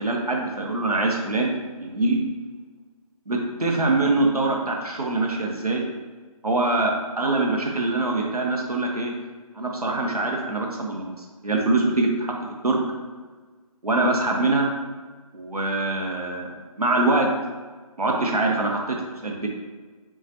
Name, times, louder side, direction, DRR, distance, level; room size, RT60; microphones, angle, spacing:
voice 1, 0.0-1.5 1.8-2.2 3.3-5.9 6.4-9.1 9.5-11.1 11.4-12.3 12.6-12.8 13.8-14.7 15.3-16.5 16.8-17.3 18.0-19.5, right 2 dB, 80° right, 0 dB, 1.1 m, -23 dB
7.0 x 2.5 x 2.7 m, 1.4 s
figure-of-eight pair, 150°, 19 cm